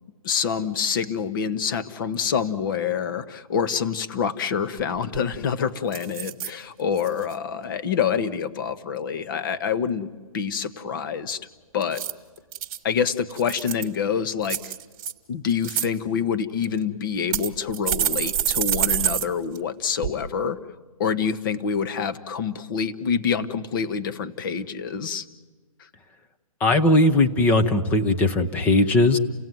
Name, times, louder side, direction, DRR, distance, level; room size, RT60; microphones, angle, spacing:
voice 1, 0.2-10.1 10.3-11.4 11.7-12.0 12.8-14.7 15.3-20.6 21.0-25.3, left 7 dB, 35° left, 14 dB, 1.1 m, -26 dB
sound 1, 4.8-4.9 5.1-5.5 5.9-6.5 7.0-7.3 11.8-12.8 13.3-13.9 14.4-15.1 15.5-15.9 16.6-16.7 17.3-19.3 19.5-19.6 20.0-20.1, right 10 dB, 20° right, 1.3 m, -26 dB
voice 2, 26.6-29.2, left 2 dB, 10° left, 8 dB, 0.7 m, -19 dB
29.5 x 17.0 x 9.3 m, 1.3 s
hypercardioid pair, 160°, 18 cm